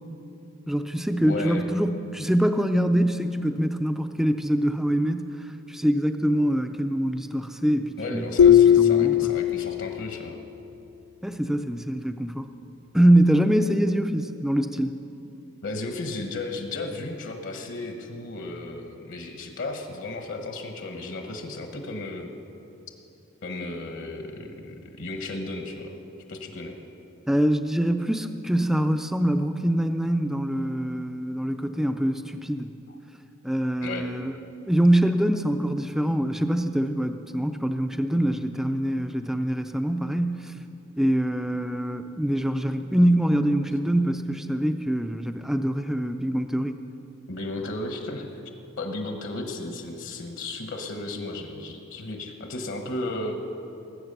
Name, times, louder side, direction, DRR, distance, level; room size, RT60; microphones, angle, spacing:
voice 1, 0.7-9.3 11.2-12.5 12.9-15.0 27.3-32.7 33.4-34.3 34.7-40.5 41.0-46.8, right 1 dB, ahead, 7 dB, 0.4 m, -24 dB
voice 2, 1.2-1.7 8.0-10.4 15.6-22.3 23.4-25.9 26.3-26.8 32.9-33.0 33.8-34.1 47.3-48.4 48.8-53.4, left 2 dB, 65° left, 4 dB, 1.2 m, -34 dB
sound 1, 8.4-10.1, left 9 dB, 80° left, 0.3 m, -18 dB
18.0 x 8.0 x 6.8 m, 2.9 s
head